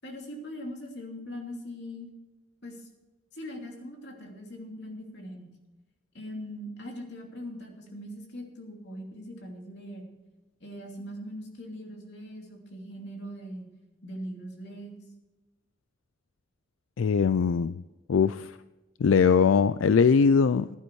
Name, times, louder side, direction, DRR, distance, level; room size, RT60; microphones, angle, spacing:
voice 1, 0.0-2.1 2.6-2.8 3.3-5.5 6.1-10.1 10.6-13.7 14.0-15.0, equal, 55° left, 1 dB, 2.9 m, -41 dB
voice 2, 17.0-17.8 18.1-18.5 19.0-20.7, left 6 dB, 85° left, 14 dB, 0.4 m, -21 dB
15.0 x 11.0 x 4.7 m, 1.1 s
head